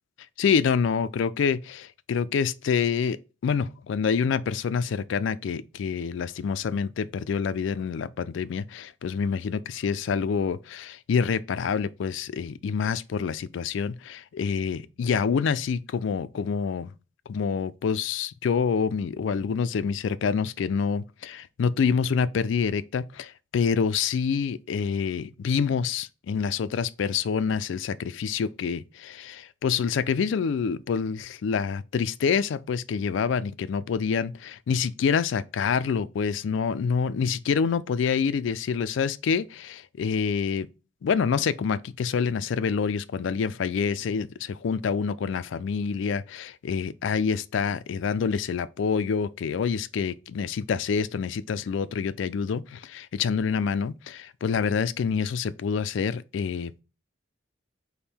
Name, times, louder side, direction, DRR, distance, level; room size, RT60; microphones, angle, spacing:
voice 1, 0.4-3.2 3.4-16.9 17.3-40.7 41.0-56.8, left 6 dB, 70° left, 0.3 m, -27 dB
5.2 x 2.1 x 4.3 m
head